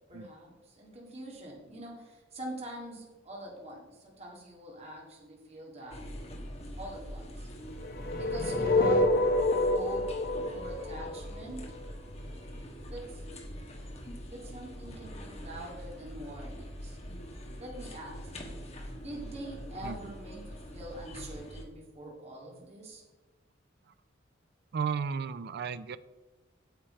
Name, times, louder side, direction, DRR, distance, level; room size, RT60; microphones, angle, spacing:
voice 1, 0.1-6.1 6.8-7.5 8.2-9.3 9.7-10.1 10.5-11.7 12.9-13.2 14.3-17.0 17.6-18.3 19.0-23.0, right 1 dB, 35° right, -3 dB, 2.0 m, -44 dB
sound 1, 5.9-21.7, equal, 35° left, 1.5 m, -43 dB
sound 2, 7.8-11.9, left 2 dB, 50° left, 0.8 m, -27 dB
voice 2, 19.8-20.1 24.7-26.0, right 6 dB, 60° right, 14 dB, 0.4 m, -34 dB
8.9 x 7.7 x 4.4 m, 1.2 s
head